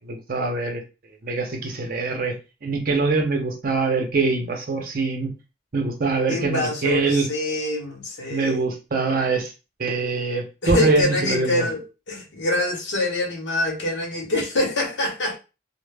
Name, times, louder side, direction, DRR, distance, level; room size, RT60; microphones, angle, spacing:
voice 1, 0.1-0.8 1.2-2.3 2.6-5.3 5.7-7.3 8.3-9.5 9.8-11.7, right 3 dB, 50° right, 0.5 m, -23 dB
voice 2, 6.3-8.6 10.6-15.3, left 2 dB, 75° left, 0.8 m, -25 dB
2.0 x 2.0 x 3.2 m
head